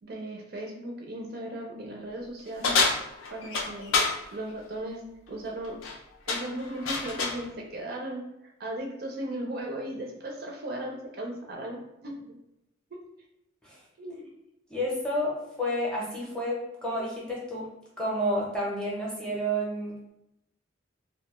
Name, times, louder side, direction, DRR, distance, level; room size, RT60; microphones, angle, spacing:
voice 1, 0.0-2.8 3.3-4.0 4.3-5.0 5.3-5.8 6.3-8.2 8.6-12.4 12.9-13.0 14.0-14.3, right 1 dB, 50° right, 0 dB, 0.4 m, -37 dB
sound 1, 2.6-4.2 5.6-6.0 6.3-7.4, left 4 dB, 80° left, 0.4 m, -27 dB
voice 2, 14.7-17.7 18.0-20.1, equal, 5° left, -5 dB, 0.6 m, -30 dB
2.3 x 2.2 x 2.9 m, 0.86 s
head